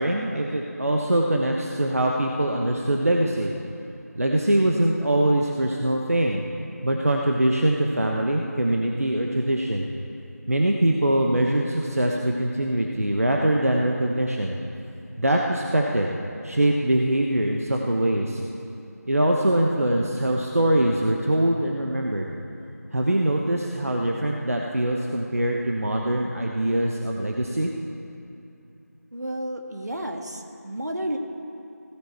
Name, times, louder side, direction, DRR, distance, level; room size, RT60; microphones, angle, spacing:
voice 1, 0.0-3.5 4.1-6.4 6.8-9.9 10.5-14.6 15.2-16.1 16.4-18.4 19.1-22.3 22.9-27.7, right 1 dB, 55° right, 0 dB, 1.1 m, -23 dB
voice 2, 29.1-31.2, right 1 dB, 75° right, 3 dB, 1.8 m, -31 dB
16.5 x 14.0 x 4.6 m, 2.8 s
figure-of-eight pair, 175°, 9 cm